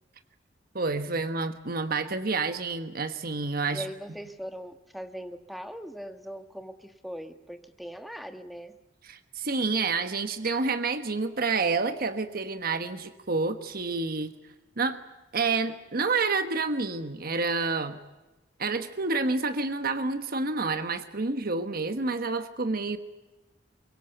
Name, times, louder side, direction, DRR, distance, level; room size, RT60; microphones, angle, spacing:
voice 1, 0.7-3.8 9.0-14.3 14.8-15.0 15.3-18.0 18.6-23.0, right 3 dB, 50° right, 9 dB, 1.3 m, -29 dB
voice 2, 3.7-8.7, equal, ahead, 8 dB, 1.3 m, -40 dB
24.0 x 22.5 x 8.0 m, 1.1 s
head